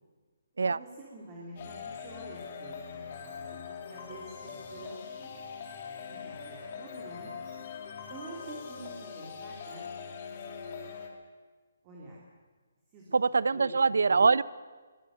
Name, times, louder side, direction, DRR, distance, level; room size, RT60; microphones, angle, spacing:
voice 1, 0.7-5.3 6.1-7.7 8.1-9.9 11.8-12.2 12.9-13.2 13.5-13.7, right 2 dB, 15° right, -4 dB, 3.3 m, -48 dB
sound 1, 1.6-11.1, left 6 dB, 30° left, 2.7 m, -42 dB
voice 2, 13.1-14.4, right 4 dB, 90° right, 19 dB, 0.7 m, -23 dB
24.0 x 18.0 x 7.8 m, 1.4 s
hypercardioid pair, 175°, 0 cm